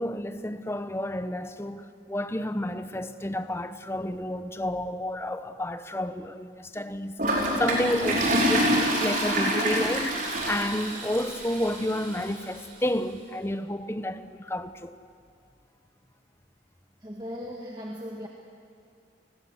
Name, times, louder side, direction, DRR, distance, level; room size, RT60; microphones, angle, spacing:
voice 1, 0.0-15.0, left 1 dB, 15° left, 0.9 m, -31 dB
Toilet flush, 7.2-12.2, right 1 dB, 45° right, 4.9 m, -26 dB
voice 2, 17.0-18.3, equal, 20° right, 1.7 m, -37 dB
30.0 x 20.0 x 8.0 m
head